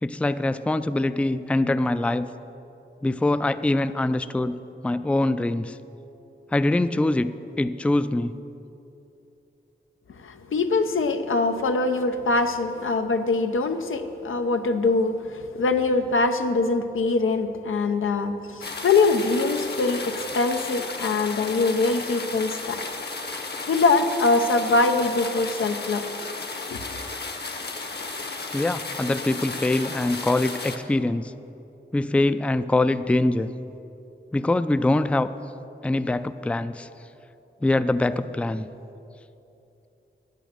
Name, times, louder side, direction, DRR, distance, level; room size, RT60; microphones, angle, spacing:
voice 1, 0.0-2.3 3.0-4.6 4.8-5.7 6.5-7.3 7.6-8.3 28.5-31.3 31.9-33.5 34.3-35.3 35.8-36.9 37.6-38.7, left 2 dB, 5° left, 12 dB, 0.3 m, -23 dB
voice 2, 10.2-22.8 23.7-26.0 26.7-26.8, left 3 dB, 90° left, 7 dB, 0.6 m, -23 dB
sound 1, 18.6-30.8, left 3 dB, 55° left, 1.1 m, -34 dB
9.2 x 8.8 x 6.7 m, 2.9 s
cardioid pair, 60°, 20 cm